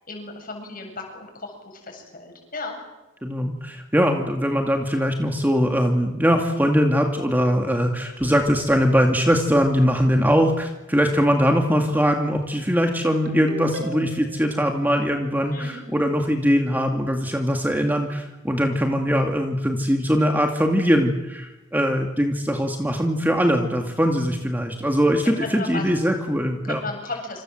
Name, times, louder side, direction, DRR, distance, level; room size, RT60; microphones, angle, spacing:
voice 1, 0.0-2.8 15.5-15.8 25.4-26.0 26.6-27.4, left 3 dB, 40° left, 3 dB, 7.9 m, -35 dB
voice 2, 3.2-26.8, equal, 10° right, 3 dB, 2.3 m, -21 dB
Ringtone, 13.2-14.4, right 1 dB, 60° right, 5.8 m, -36 dB
27.5 x 27.0 x 7.8 m, 1.0 s
head